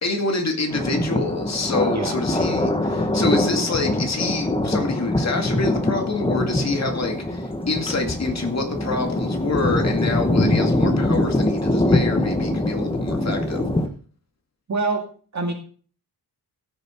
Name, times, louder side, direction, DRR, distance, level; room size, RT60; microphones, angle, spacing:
voice 1, 0.0-13.6, left 3 dB, 45° left, 2.1 m, -26 dB
Thunder, 0.7-13.9, left 1 dB, 15° left, 1.0 m, -23 dB
voice 2, 1.9-2.2 14.7-15.1 15.3-15.5, right 3 dB, 45° right, 2.1 m, -25 dB
15.0 x 6.9 x 4.4 m
wide cardioid pair, 145°, 38 cm